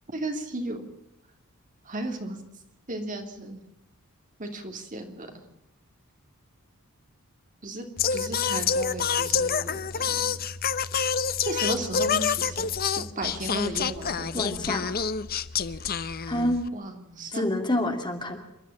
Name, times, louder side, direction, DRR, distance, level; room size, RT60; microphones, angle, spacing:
voice 1, 0.1-0.8 1.9-2.4 2.9-3.6 4.4-5.3 7.6-7.9 8.1-10.4 11.4-14.6 16.7-17.5, right 1 dB, 35° right, 4 dB, 3.0 m, -35 dB
Singing, 8.0-16.7, left 6 dB, 45° left, 0.8 m, -27 dB
voice 2, 14.3-14.8 16.3-16.6 17.3-18.4, left 1 dB, 20° left, 4 dB, 2.8 m, -27 dB
28.0 x 12.5 x 8.6 m, 0.87 s
head